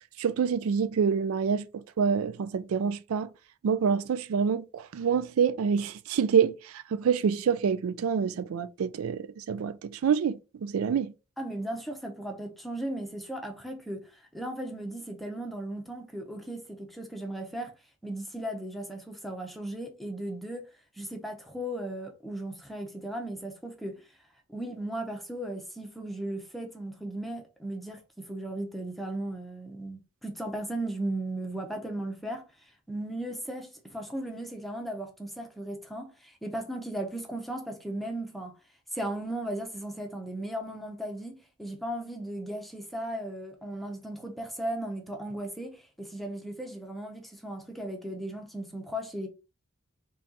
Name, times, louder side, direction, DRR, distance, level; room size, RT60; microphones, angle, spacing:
voice 1, 0.2-3.3 3.6-11.1, right 6 dB, 85° right, 0.3 m, -27 dB
voice 2, 11.4-14.1 14.3-17.7 18.0-20.6 21.0-24.0 24.5-32.5 32.9-38.5 38.9-49.3, right 1 dB, ahead, 0.7 m, -36 dB
4.2 x 2.4 x 3.9 m
head